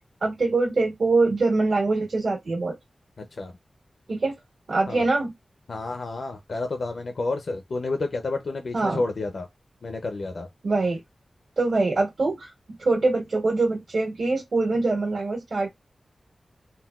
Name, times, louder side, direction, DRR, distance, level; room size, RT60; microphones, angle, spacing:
voice 1, 0.2-2.7 4.1-4.3 4.7-5.3 8.7-9.0 10.6-11.0 11.6-12.5 12.8-15.7, right 3 dB, 75° right, 1.4 m, -23 dB
voice 2, 3.2-3.5 4.9-5.0 5.7-9.5 9.8-10.5, left 3 dB, 65° left, 0.5 m, -30 dB
3.8 x 2.2 x 2.3 m
wide cardioid pair, 110°, 0 cm